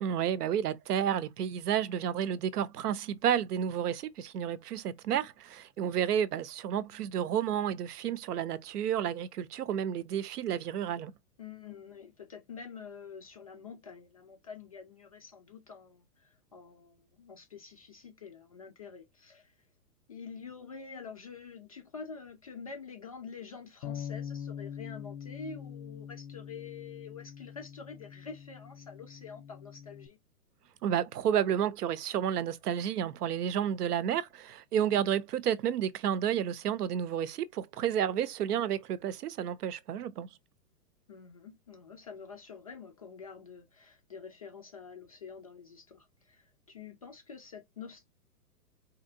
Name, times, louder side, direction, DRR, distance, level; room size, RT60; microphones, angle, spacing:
voice 1, 0.0-11.1 30.8-40.3, right 9 dB, 70° right, 0.7 m, -31 dB
voice 2, 11.4-19.5 20.1-30.2 41.1-48.1, left 5 dB, 25° left, 0.4 m, -47 dB
Bass guitar, 23.8-30.1, left 8 dB, 75° left, 0.7 m, -43 dB
4.3 x 2.8 x 2.5 m
hypercardioid pair, 140°, 48 cm